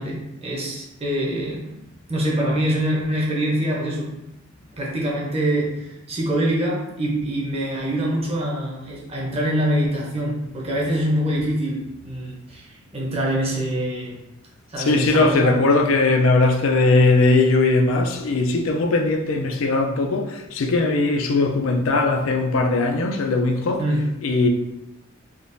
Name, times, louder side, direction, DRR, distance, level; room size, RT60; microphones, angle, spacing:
voice 1, 0.0-1.8 2.1-4.2 4.8-14.2 14.7-15.6 23.8-24.1, right 1 dB, 30° right, 0.7 m, -24 dB
voice 2, 14.8-23.8 24.2-24.5, left 3 dB, 80° left, 0.4 m, -19 dB
3.6 x 2.4 x 2.5 m
head